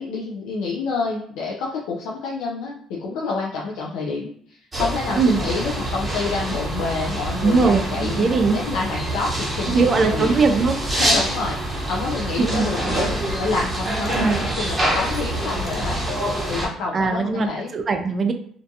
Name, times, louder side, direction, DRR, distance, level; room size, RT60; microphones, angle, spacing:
voice 1, 0.0-10.3 11.0-14.2 14.4-17.7, left 4 dB, 85° left, -3 dB, 0.4 m, -28 dB
sound 1, 4.7-16.7, right 1 dB, 20° right, 0.8 m, -26 dB
voice 2, 7.4-8.6 9.7-10.8 12.4-12.7 14.1-14.5 16.9-17.5 17.7-18.3, right 4 dB, 40° right, 6 dB, 0.4 m, -20 dB
2.5 x 2.2 x 2.6 m, 0.62 s
cardioid pair, 85°, 0 cm